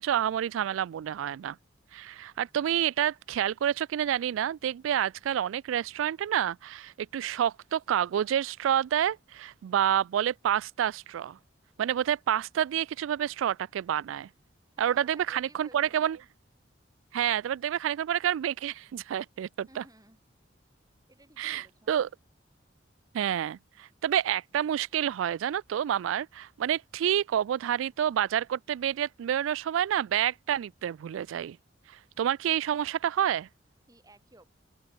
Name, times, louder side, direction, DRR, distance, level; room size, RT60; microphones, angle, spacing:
voice 1, 0.0-1.6 1.9-11.4 11.8-14.3 14.8-16.2 17.1-19.8 21.4-22.1 23.1-31.6 31.9-33.5, right 10 dB, 85° right, 0.3 m, -28 dB
voice 2, 14.8-16.2 19.7-20.2 21.1-21.9 33.9-34.4, right 2 dB, 20° right, 4.8 m, -56 dB
open air
head